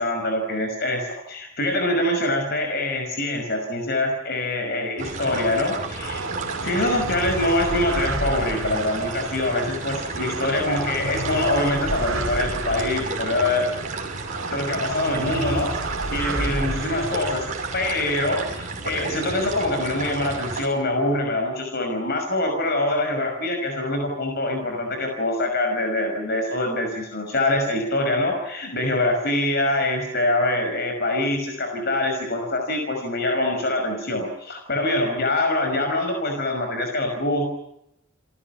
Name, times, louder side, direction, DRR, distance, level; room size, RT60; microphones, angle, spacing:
voice 1, 0.0-6.2 6.6-13.7 14.5-37.5, left 1 dB, 50° left, 4 dB, 5.6 m, -24 dB
sound 1, 5.0-20.7, right 3 dB, 40° right, 5.6 m, -32 dB
sound 2, 6.0-18.4, right 2 dB, 75° right, 3.2 m, -32 dB
29.0 x 19.0 x 8.9 m, 0.80 s
head